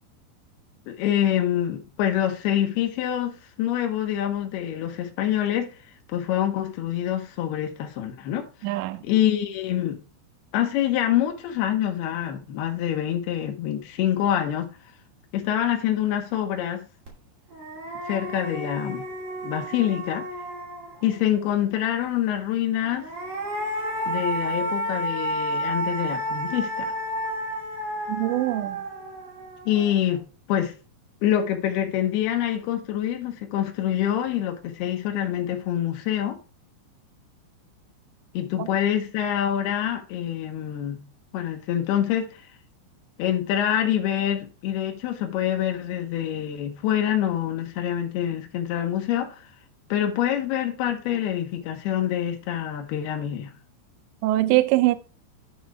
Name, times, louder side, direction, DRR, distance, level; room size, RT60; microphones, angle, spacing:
voice 1, 0.9-5.7 6.1-8.5 9.0-10.0 10.5-14.7 15.3-16.9 18.1-19.0 19.4-20.3 21.0-23.1 24.1-26.9 29.7-30.2 30.5-30.7 31.2-36.4 38.3-41.0 41.3-42.5 43.2-49.5 49.9-53.5, left 11 dB, 70° left, 2.6 m, -26 dB
voice 2, 8.6-9.0 28.1-28.8 38.6-38.7 54.2-55.0, right 17 dB, 80° right, 2.7 m, -22 dB
sound 1, 17.1-17.2 17.5-21.2 22.8-30.1, right 1 dB, 40° right, 3.1 m, -31 dB
10.5 x 4.3 x 4.8 m
omnidirectional pair, 5.4 m